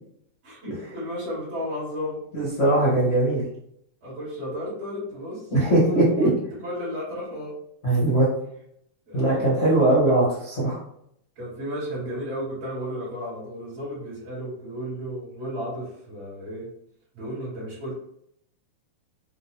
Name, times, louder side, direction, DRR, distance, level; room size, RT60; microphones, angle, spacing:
voice 1, 0.4-2.2 4.0-7.5 9.1-9.5 11.4-16.7 17.1-18.0, equal, 60° right, -11 dB, 3.0 m, -33 dB
voice 2, 2.3-3.4 5.5-6.3 7.8-8.3 9.1-10.8, right 2 dB, 70° left, -7 dB, 0.6 m, -20 dB
5.9 x 2.4 x 3.3 m, 0.73 s
omnidirectional pair, 3.3 m